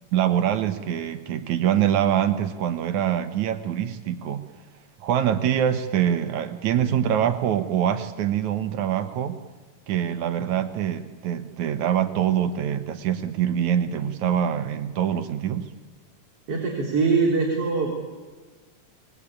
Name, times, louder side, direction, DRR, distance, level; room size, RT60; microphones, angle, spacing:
voice 1, 0.1-4.5 5.0-9.4 9.9-15.7, right 10 dB, 80° right, 10 dB, 2.8 m, -24 dB
voice 2, 16.5-17.9, right 4 dB, 50° right, 0 dB, 4.4 m, -23 dB
26.5 x 21.5 x 8.7 m, 1.4 s
omnidirectional pair, 3.3 m